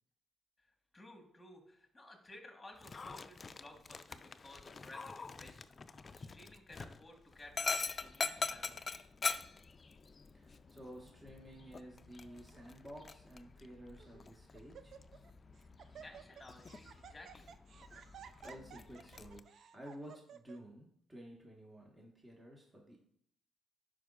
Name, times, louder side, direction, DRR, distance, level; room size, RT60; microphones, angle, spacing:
voice 1, 0.9-9.0 15.8-17.5 17.8-18.0, left 1 dB, 15° left, 3 dB, 1.5 m, -56 dB
Dog, 2.8-19.4, left 4 dB, 35° left, 0.4 m, -44 dB
voice 2, 10.3-15.0 18.4-23.0, equal, 20° right, -1 dB, 1.4 m, -53 dB
Laughter, 12.2-12.6 13.4-13.5 14.0-14.3 14.5-15.3 15.6-20.6, right 8 dB, 60° right, 0.4 m, -55 dB
11.0 x 5.1 x 2.5 m, 0.68 s
cardioid pair, 90°, 0 cm